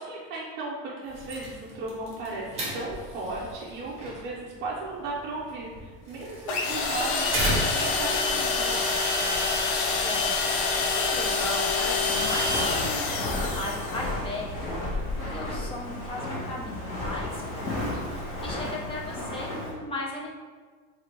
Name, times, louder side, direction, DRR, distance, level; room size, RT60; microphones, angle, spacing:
voice 1, 0.0-8.8, right 2 dB, 35° right, -5 dB, 0.5 m, -36 dB
sound 1, 1.0-8.0, right 1 dB, 20° right, 0.9 m, -35 dB
sound 2, 6.5-14.1, left 3 dB, 75° left, 0.7 m, -26 dB
voice 2, 9.9-20.3, left 2 dB, 20° left, -3 dB, 0.5 m, -37 dB
Walk footsteps, 12.0-19.7, left 1 dB, 50° left, 1.0 m, -33 dB
2.7 x 2.6 x 4.3 m, 1.5 s
cardioid pair, 160°, 30 cm